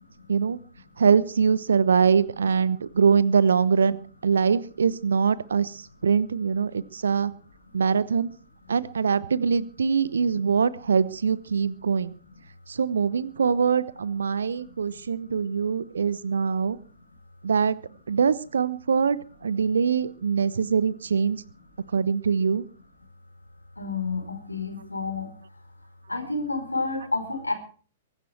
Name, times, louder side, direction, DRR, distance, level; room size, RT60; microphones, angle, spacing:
voice 1, 1.0-4.0 4.2-5.7 6.0-7.3 7.7-8.3 8.7-12.1 12.7-16.8 17.4-17.8 18.1-21.4 21.9-22.6, right 6 dB, 70° right, 19 dB, 1.0 m, -23 dB
voice 2, 23.8-25.3 26.1-27.5, left 3 dB, 85° left, 6 dB, 4.5 m, -29 dB
23.0 x 11.5 x 4.5 m, 0.41 s
figure-of-eight pair, 110°, 0 cm